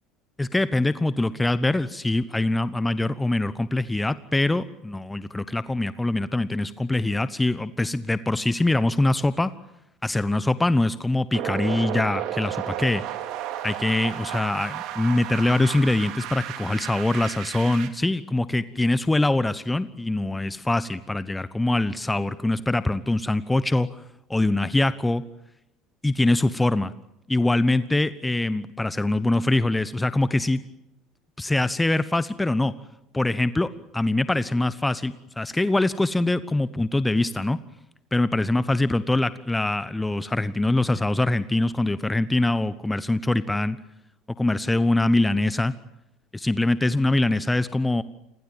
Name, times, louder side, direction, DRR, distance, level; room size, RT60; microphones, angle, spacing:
voice 1, 0.4-9.5 10.0-13.0 13.6-23.9 24.3-25.2 26.0-26.9 27.3-30.6 31.4-32.7 33.1-37.6 38.1-43.8 44.4-45.7 46.3-48.0, left 2 dB, 10° left, 15 dB, 1.0 m, -23 dB
sound 1, 11.3-17.9, right 11 dB, 60° right, 2.6 m, -33 dB
28.5 x 22.0 x 7.6 m, 0.89 s
figure-of-eight pair, 65°, 0 cm